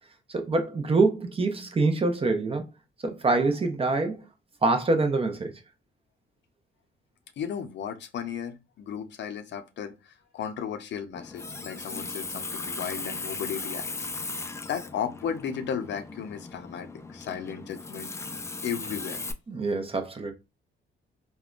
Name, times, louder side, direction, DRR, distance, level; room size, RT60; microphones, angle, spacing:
voice 1, 0.3-2.7 3.0-4.3 4.6-5.5 19.5-20.3, right 3 dB, 30° right, 0.7 m, -25 dB
voice 2, 7.4-14.1 14.4-18.1 18.6-19.2, left 8 dB, 65° left, 0.6 m, -35 dB
Water tap faucet, 11.1-19.3, left 3 dB, 15° left, 0.3 m, -37 dB
3.4 x 2.1 x 2.4 m
cardioid pair, 90°, 20 cm